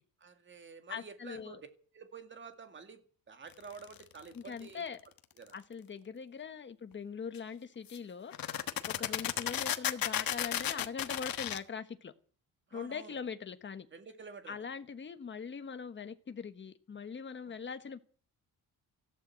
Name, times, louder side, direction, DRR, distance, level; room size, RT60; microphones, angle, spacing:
voice 1, 0.2-1.6 1.9-3.0 3.3-4.8 5.4-5.6 8.9-9.1 12.7-13.2 13.9-14.7 17.4-17.5, right 5 dB, 30° right, 2.1 m, -50 dB
voice 2, 0.9-1.6 4.3-5.0 5.5-8.6 8.9-12.1 12.7-13.9 14.5-18.0, left 6 dB, 30° left, 1.2 m, -42 dB
sound 1, 3.8-4.2 7.3-7.4 7.9-8.0 8.3-11.6, left 11 dB, 65° left, 1.4 m, -34 dB
14.5 x 12.0 x 7.5 m
cardioid pair, 160°, 38 cm